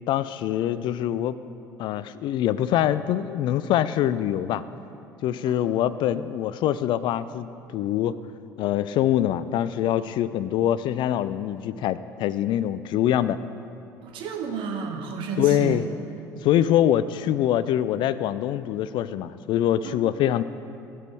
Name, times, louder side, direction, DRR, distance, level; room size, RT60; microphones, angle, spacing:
voice 1, 0.1-1.3 1.8-4.6 5.2-8.1 8.6-13.4 15.4-15.8 16.4-20.4, left 11 dB, 50° left, 15 dB, 0.3 m, -24 dB
voice 2, 14.0-15.8 19.8-20.3, right 5 dB, 55° right, 2 dB, 1.4 m, -32 dB
15.0 x 6.2 x 4.7 m, 2.7 s
figure-of-eight pair, 60°, 10 cm